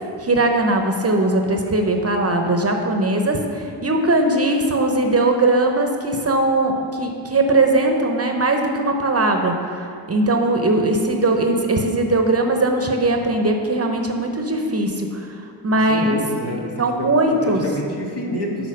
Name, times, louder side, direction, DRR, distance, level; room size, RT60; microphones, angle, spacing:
voice 1, 0.2-16.2 16.8-17.6, right 2 dB, 30° right, 4 dB, 0.8 m, -20 dB
voice 2, 15.7-18.7, equal, 55° left, -2 dB, 1.6 m, -28 dB
6.6 x 4.5 x 6.5 m, 2.4 s
cardioid pair, 55°, 47 cm